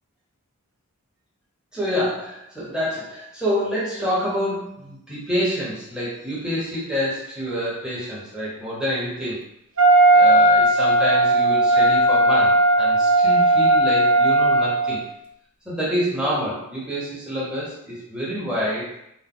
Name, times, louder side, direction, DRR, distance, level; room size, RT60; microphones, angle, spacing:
voice 1, 1.7-9.4 10.1-15.0 15.6-18.9, equal, 5° right, -8 dB, 0.9 m, -27 dB
Wind instrument woodwind instrument, 9.8-15.0, right 2 dB, 60° right, 0.6 m, -16 dB
3.9 x 2.0 x 3.8 m, 0.78 s
head